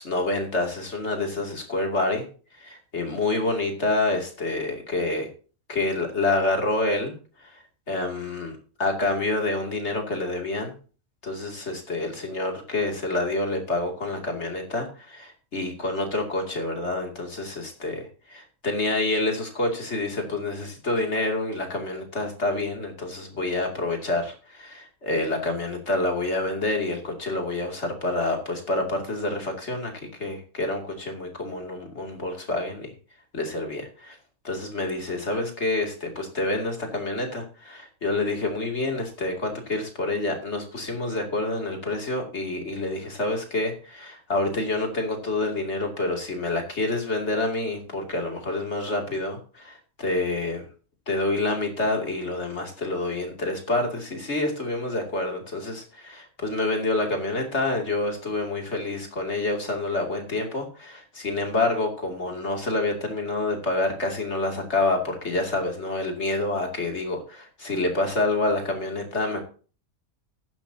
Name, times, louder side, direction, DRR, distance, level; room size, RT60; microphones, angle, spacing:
voice 1, 0.0-2.2 2.6-5.3 5.7-7.6 7.9-10.7 11.2-29.9 30.2-32.9 33.3-34.2 34.4-50.7 51.1-69.4, left 2 dB, 60° left, 2 dB, 3.1 m, -27 dB
14.0 x 11.0 x 2.9 m, 0.37 s
omnidirectional pair, 1.3 m